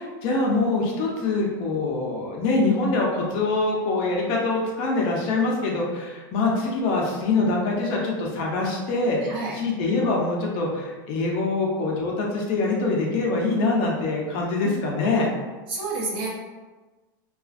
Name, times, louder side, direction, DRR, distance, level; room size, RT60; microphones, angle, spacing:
voice 1, 0.0-9.2 9.5-15.3, left 3 dB, 50° left, -2 dB, 0.6 m, -24 dB
voice 2, 15.7-16.3, right 3 dB, 45° right, -4 dB, 0.8 m, -29 dB
2.4 x 2.4 x 2.4 m, 1.3 s
supercardioid pair, 135°, 11 cm